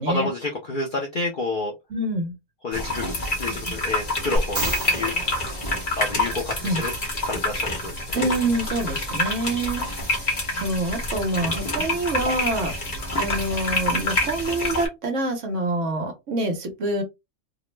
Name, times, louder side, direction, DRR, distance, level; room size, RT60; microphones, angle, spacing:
voice 1, 0.1-1.7 2.6-3.1 3.4-5.1 6.0-6.9 7.2-8.0, left 2 dB, 60° left, 0 dB, 0.5 m, -29 dB
voice 2, 1.9-2.3 6.6-6.8 8.1-10.2 10.5-12.7 13.2-17.0, right 2 dB, 60° right, 4 dB, 1.1 m, -26 dB
sound 1, 2.7-14.9, left 1 dB, 35° left, 0.9 m, -27 dB
sound 2, 4.4-6.6 10.0-10.1, right 1 dB, 35° right, 0.8 m, -31 dB
2.9 x 2.0 x 3.1 m, 0.23 s
omnidirectional pair, 1.5 m